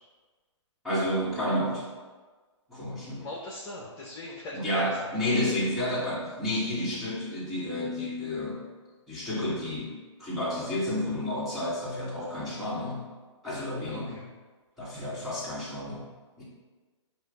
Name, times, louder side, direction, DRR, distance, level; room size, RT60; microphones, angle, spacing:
voice 1, 0.8-1.9 2.7-3.3 4.5-8.7 9.1-9.9 10.2-13.1 13.4-14.2 14.8-16.1 16.4-16.5, left 1 dB, ahead, -10 dB, 2.1 m, -30 dB
voice 2, 3.1-5.1 13.8-14.3 14.8-14.9, left 2 dB, 25° left, -5 dB, 1.1 m, -40 dB
8.1 x 2.8 x 5.3 m, 1.4 s
hypercardioid pair, 140°, 16 cm